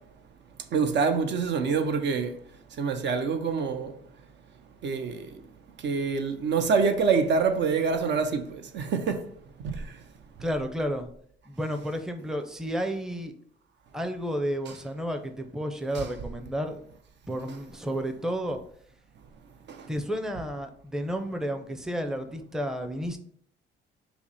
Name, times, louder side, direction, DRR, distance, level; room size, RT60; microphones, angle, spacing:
voice 1, 0.7-2.3 2.8-3.9 4.8-5.2 5.8-9.2 9.6-9.7 15.9-16.1, right 5 dB, 60° right, 0.6 m, -26 dB
voice 2, 10.4-11.1 11.5-13.3 13.9-16.8 17.3-18.6 19.9-23.2, equal, 5° right, 0.5 m, -31 dB
5.7 x 2.1 x 4.0 m
cardioid pair, 90°, 20 cm